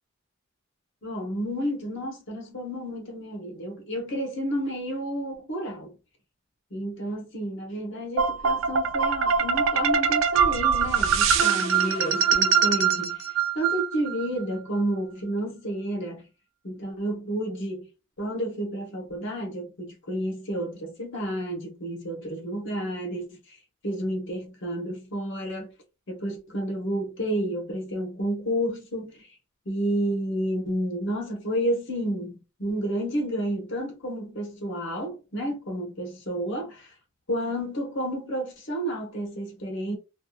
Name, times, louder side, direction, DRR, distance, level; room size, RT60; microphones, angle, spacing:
voice 1, 1.0-5.9 6.7-13.2 13.5-16.3 16.6-17.9 18.2-23.4 23.8-25.7 26.1-29.2 29.7-36.9 37.3-40.0, right 1 dB, 60° left, 0.9 m, -30 dB
sound 1, 8.2-14.3, right 6 dB, 65° right, 0.3 m, -23 dB
2.6 x 2.3 x 2.3 m
head